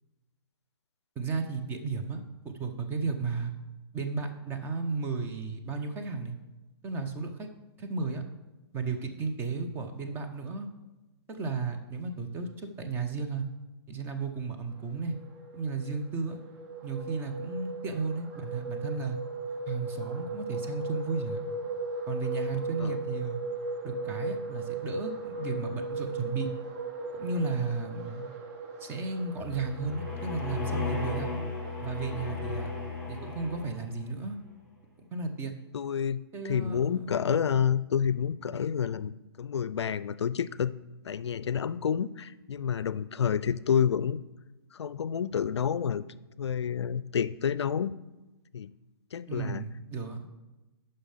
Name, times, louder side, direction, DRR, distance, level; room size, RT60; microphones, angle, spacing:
voice 1, 1.2-3.5 3.9-6.3 6.8-7.5 7.8-8.2 8.7-10.7 11.3-13.4 13.9-15.2 15.5-16.4 16.8-19.2 19.7-21.4 22.1-23.4 23.8-26.5 27.1-28.3 28.8-31.3 31.8-32.7 33.1-34.4 35.0-35.5 36.3-37.1 49.3-50.3, right 4 dB, 15° right, 5 dB, 0.8 m, -34 dB
sound 1, 14.9-32.7, right 3 dB, 35° right, 1.0 m, -38 dB
sound 2, 29.4-34.0, left 5 dB, 10° left, 3.2 m, -35 dB
voice 2, 35.7-36.2 36.4-39.1 39.4-40.7 41.0-44.2 44.7-46.0 46.4-47.9 48.5-48.7 49.1-49.6, left 7 dB, 85° left, 17 dB, 0.4 m, -29 dB
6.9 x 5.4 x 5.7 m, 1.1 s
hypercardioid pair, 145°, 14 cm